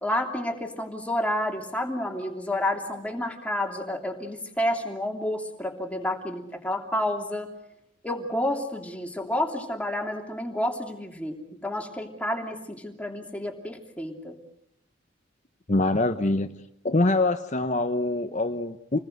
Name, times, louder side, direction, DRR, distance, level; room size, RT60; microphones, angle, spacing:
voice 1, 0.0-7.5 8.0-14.4, left 1 dB, 5° left, 2 dB, 2.9 m, -30 dB
voice 2, 15.7-16.5 16.8-19.0, left 2 dB, 35° left, 8 dB, 0.9 m, -24 dB
28.0 x 20.0 x 7.9 m, 0.78 s
head